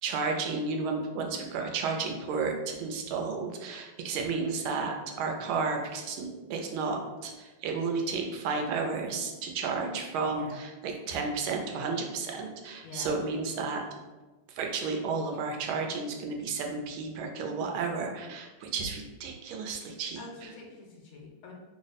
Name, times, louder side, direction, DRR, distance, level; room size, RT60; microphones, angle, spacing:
voice 1, 0.0-13.8 14.5-20.5, right 4 dB, 90° right, 2 dB, 1.4 m, -32 dB
voice 2, 20.2-21.5, left 4 dB, 75° left, -1 dB, 1.2 m, -45 dB
3.4 x 2.0 x 3.9 m, 1.2 s
omnidirectional pair, 2.2 m